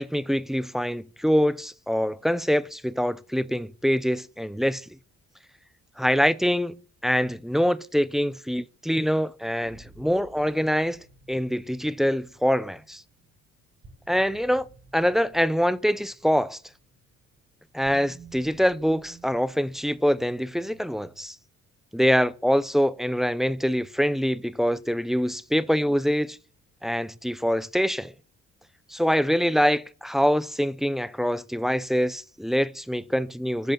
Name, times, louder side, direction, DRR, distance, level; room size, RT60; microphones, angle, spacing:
voice 1, 0.0-4.9 6.0-13.0 14.1-14.7 14.9-16.6 17.7-21.4 21.9-26.4 26.8-28.1 28.9-33.7, equal, ahead, 0.5 m, -24 dB
sound 1, 9.7-21.2, right 4 dB, 40° right, 4.4 m, -54 dB
7.9 x 6.6 x 8.0 m
cardioid pair, 90°, 30 cm